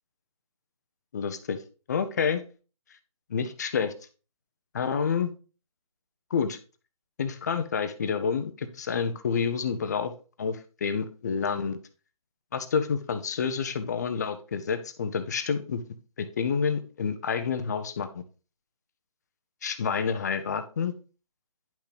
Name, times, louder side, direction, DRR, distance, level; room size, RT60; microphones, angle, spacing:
voice 1, 1.1-1.6 1.9-2.4 3.3-3.9 4.7-5.3 6.3-6.6 7.2-10.1 10.4-11.8 12.5-15.8 16.2-18.2 19.6-20.9, left 6 dB, 30° left, 10 dB, 0.7 m, -28 dB
10.0 x 5.8 x 3.4 m, 0.36 s
figure-of-eight pair, 160°, 18 cm